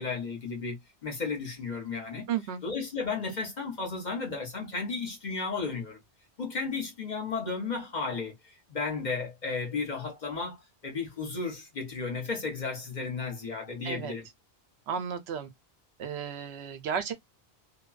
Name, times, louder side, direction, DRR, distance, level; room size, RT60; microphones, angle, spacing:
voice 1, 0.0-2.3 2.6-6.0 6.4-10.6 10.8-14.3, left 4 dB, 45° left, 1.0 m, -34 dB
voice 2, 2.3-2.6 13.8-14.1 14.9-15.5 16.0-17.1, right 8 dB, 75° right, 0.8 m, -33 dB
2.7 x 2.2 x 2.3 m
omnidirectional pair, 1.1 m